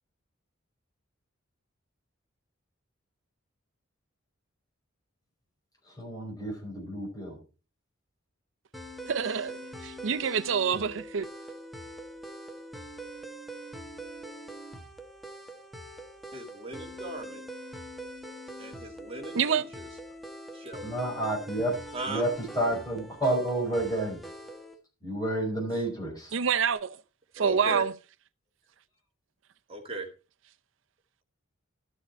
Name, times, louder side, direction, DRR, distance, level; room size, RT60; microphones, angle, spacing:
voice 1, 5.9-7.4 20.8-21.8 22.1-22.3 22.6-24.2 25.0-26.3, right 1 dB, 20° left, 5.3 m, -30 dB
sound 1, 8.7-24.8, right 1 dB, ahead, 1.2 m, -43 dB
voice 2, 9.1-11.3 19.3-19.6 26.3-27.0 27.4-27.9, right 6 dB, 70° right, 0.6 m, -27 dB
voice 3, 16.3-17.4 18.6-19.9 20.5-20.9 21.9-22.2 25.7-25.8 27.4-27.9 29.7-30.1, right 2 dB, 30° right, 2.3 m, -38 dB
12.5 x 7.1 x 4.3 m
head